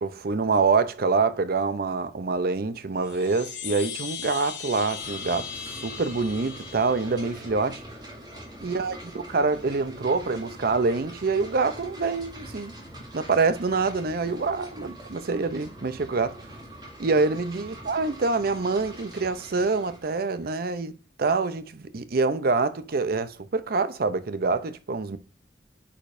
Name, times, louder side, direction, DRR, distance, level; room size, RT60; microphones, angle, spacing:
voice 1, 0.0-5.5 5.8-7.8 8.6-12.7 13.1-16.4 17.0-25.2, right 4 dB, 60° right, 0.6 m, -26 dB
Chime, 2.9-7.6, left 8 dB, 85° left, 1.3 m, -38 dB
sound 1, 5.0-20.7, right 1 dB, 25° right, 2.3 m, -44 dB
8.6 x 5.1 x 2.6 m
head